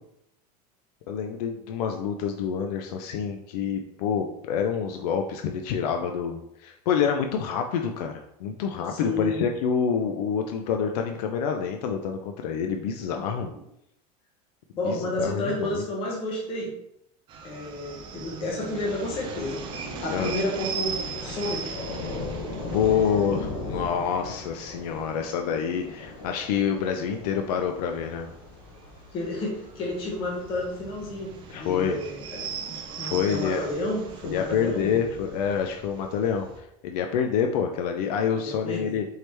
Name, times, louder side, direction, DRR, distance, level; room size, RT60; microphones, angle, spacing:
voice 1, 1.1-13.5 14.8-15.8 20.1-20.3 22.7-28.3 31.5-32.0 33.0-33.6 34.2-39.1, left 7 dB, 80° left, 4 dB, 0.5 m, -27 dB
voice 2, 8.9-9.4 14.8-16.7 17.4-19.7 20.0-21.7 29.1-35.0 38.3-39.0, left 2 dB, 25° left, -3 dB, 0.9 m, -31 dB
sound 1, 17.3-36.6, right 6 dB, 25° right, 0.3 m, -40 dB
Thunder / Rain, 19.0-31.8, left 3 dB, 60° left, 0.9 m, -39 dB
4.6 x 3.0 x 3.3 m, 0.78 s
supercardioid pair, 170°, 20 cm